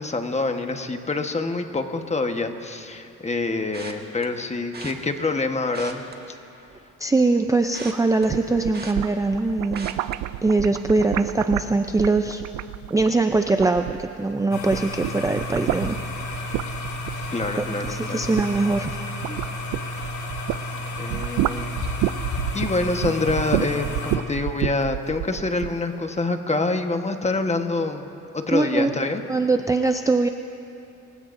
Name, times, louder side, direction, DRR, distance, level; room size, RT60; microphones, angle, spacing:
voice 1, 0.0-6.0 17.3-18.3 21.0-21.9 22.5-28.1 28.3-29.2, left 3 dB, 20° left, 6 dB, 1.2 m, -26 dB
sound 1, 3.7-4.3 4.7-4.9 5.6-6.9 7.2-9.4 9.7-10.1 10.6-10.9 11.2-11.3, right 4 dB, 30° right, 1.7 m, -40 dB
voice 2, 7.0-9.9 10.4-12.4 12.9-16.5 17.6-19.0 19.3-19.4 28.5-28.9 29.3-30.3, right 3 dB, 10° right, 6 dB, 0.5 m, -22 dB
sound 2, 8.1-14.3 14.6-20.7 21.0-25.8, right 15 dB, 80° right, 0.5 m, -30 dB
sound 3, 14.5-24.2, left 2 dB, 75° left, 2.4 m, -32 dB
29.5 x 16.5 x 2.6 m, 2.7 s
cardioid pair, 90°, 30 cm